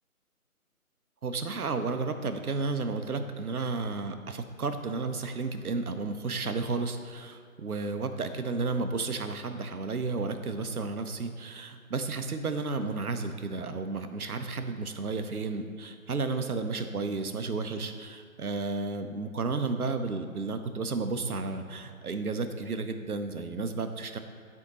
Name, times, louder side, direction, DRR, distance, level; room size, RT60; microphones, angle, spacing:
voice 1, 1.2-24.2, right 3 dB, 80° right, 8 dB, 0.7 m, -32 dB
10.5 x 3.6 x 2.9 m, 2.1 s
figure-of-eight pair, 150°, 43 cm